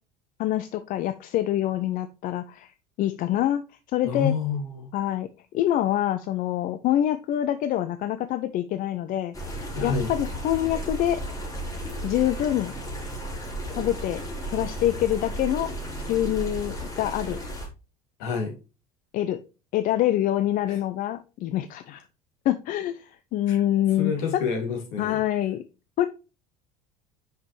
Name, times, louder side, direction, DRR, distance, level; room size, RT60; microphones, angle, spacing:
voice 1, 0.4-3.6 3.9-4.3 4.9-5.3 5.5-11.2 12.0-12.7 13.8-14.2 14.5-15.7 16.1-17.4 19.1-19.4 19.7-22.0 22.4-24.4 25.0-25.6 26.0-26.1, left 12 dB, 45° left, 0.5 m, -26 dB
voice 2, 4.0-4.9 9.8-10.1 18.2-18.5 20.7-20.8 23.5-23.6 24.0-25.2, left 5 dB, 65° left, 2.4 m, -28 dB
sound 1, 9.3-17.7, right 1 dB, 20° left, 2.6 m, -34 dB
5.7 x 5.5 x 3.1 m
hypercardioid pair, 65°, 19 cm